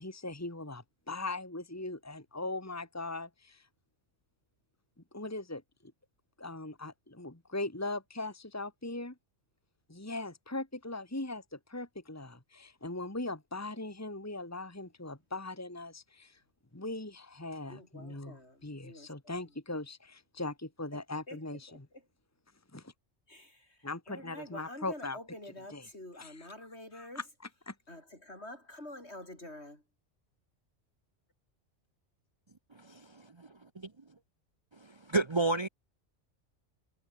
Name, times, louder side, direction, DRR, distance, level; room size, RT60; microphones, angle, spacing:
voice 1, 0.0-3.7 5.1-5.9 6.4-9.1 9.9-16.4 16.7-21.7 22.7-22.9 23.8-25.2 25.7-25.9 26.2-26.3 26.9-27.2 27.7-27.8, left 2 dB, 15° left, 2.1 m, -40 dB
voice 2, 17.7-19.4 21.3-22.0 23.3-27.2 27.9-29.8, left 1 dB, 65° left, 7.6 m, -48 dB
voice 3, 32.8-33.5 33.8-33.9 35.1-35.7, right 2 dB, 25° right, 0.8 m, -31 dB
omnidirectional pair, 1.2 m